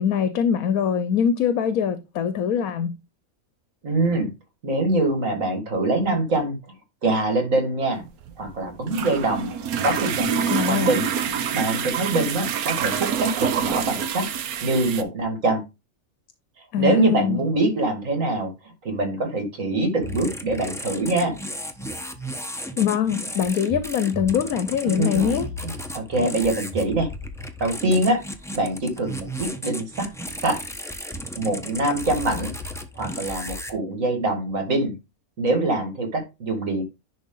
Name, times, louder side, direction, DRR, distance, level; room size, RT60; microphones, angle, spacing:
voice 1, 0.0-2.9 10.5-11.0 16.7-17.4 22.8-25.5, left 8 dB, 75° left, 1.2 m, -23 dB
voice 2, 3.8-4.3 4.6-6.6 7.0-8.0 8.4-9.5 9.8-11.1 11.5-14.3 14.6-15.6 16.8-18.5 18.8-21.4 25.0-25.3 25.6-27.1 27.6-28.2 28.5-30.1 30.4-30.6 31.4-32.5 33.0-34.9 35.4-36.8, right 2 dB, 60° right, 2.4 m, -24 dB
sound 1, 8.0-15.0, right 7 dB, 80° right, 1.3 m, -26 dB
sound 2, 20.0-33.7, equal, 5° left, 0.7 m, -34 dB
10.5 x 4.0 x 3.8 m
omnidirectional pair, 1.5 m